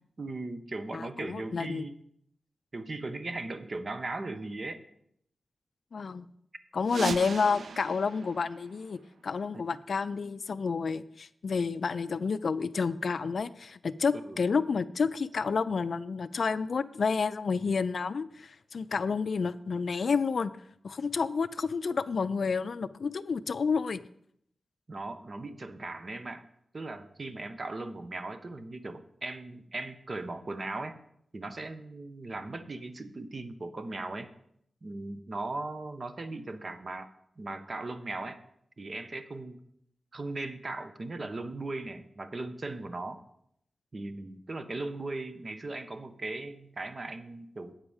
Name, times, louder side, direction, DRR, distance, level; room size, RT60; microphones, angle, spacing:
voice 1, 0.2-1.9 2.7-4.8 9.5-9.6 14.2-14.4 24.9-26.4 26.7-31.0 31.3-34.3 34.8-37.1 37.4-38.4 38.8-39.6 40.1-43.2 43.9-47.7, right 2 dB, 40° right, 9 dB, 0.7 m, -38 dB
voice 2, 0.9-1.8 5.9-6.3 6.7-20.5 20.8-24.0, left 5 dB, 60° left, 14 dB, 0.4 m, -30 dB
sound 1, 6.8-9.5, right 5 dB, 75° right, 0.4 m, -39 dB
8.9 x 4.8 x 7.1 m, 0.72 s
wide cardioid pair, 130°, 0 cm